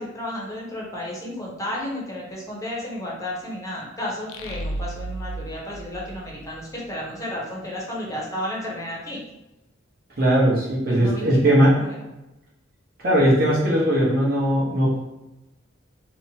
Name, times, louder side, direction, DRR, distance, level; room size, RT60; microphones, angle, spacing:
voice 1, 0.0-9.2 10.9-11.9, left 1 dB, 15° left, -4 dB, 0.6 m, -32 dB
sound 1, 4.3-6.9, right 2 dB, 80° left, 0.3 m, -34 dB
voice 2, 10.2-11.8 13.0-15.0, equal, 50° right, -7 dB, 0.9 m, -19 dB
2.8 x 2.1 x 2.7 m, 0.97 s
head